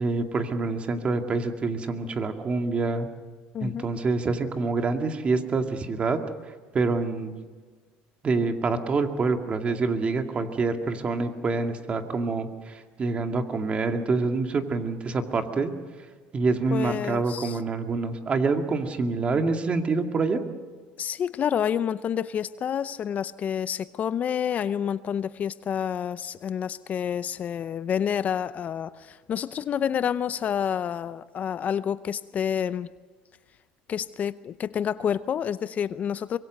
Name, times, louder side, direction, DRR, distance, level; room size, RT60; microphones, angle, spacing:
voice 1, 0.0-3.1 3.6-6.2 6.7-7.3 8.2-15.7 16.3-20.4, right 3 dB, 30° right, 5 dB, 2.3 m, -26 dB
voice 2, 3.5-3.9 16.7-17.6 21.0-32.9 33.9-36.4, left 8 dB, 40° left, 15 dB, 0.6 m, -28 dB
24.5 x 23.0 x 6.6 m, 1.5 s
supercardioid pair, 105°, 4 cm